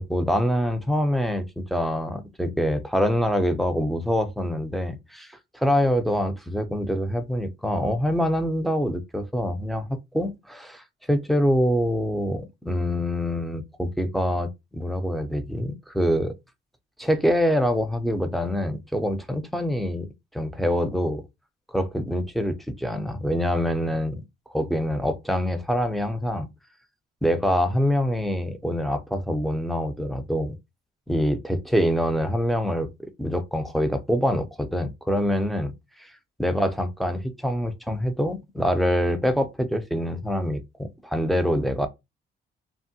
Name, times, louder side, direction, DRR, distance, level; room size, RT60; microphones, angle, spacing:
voice 1, 0.0-16.3 17.0-20.1 20.3-21.2 21.7-24.2 24.5-26.5 27.2-30.6 31.1-32.9 33.2-35.7 36.0-36.1 36.4-41.9, equal, ahead, 0.4 m, -25 dB
3.3 x 2.1 x 2.6 m
cardioid pair, 90°, 20 cm